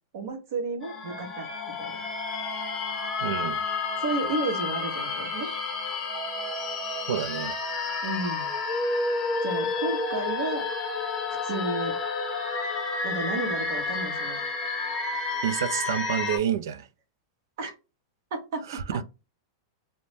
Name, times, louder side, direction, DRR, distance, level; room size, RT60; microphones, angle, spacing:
voice 1, 0.1-2.0 4.0-5.5 8.0-8.5 9.4-10.7 11.4-12.0 13.0-14.4 17.6-17.7 18.3-19.0, right 3 dB, 60° right, 1.0 m, -32 dB
sound 1, 0.8-16.4, left 3 dB, 15° left, 0.6 m, -30 dB
voice 2, 3.2-3.6 7.1-7.6 15.4-16.9 18.7-19.0, right 9 dB, 80° right, 0.3 m, -29 dB
2.6 x 2.1 x 3.1 m
supercardioid pair, 165°, 2 cm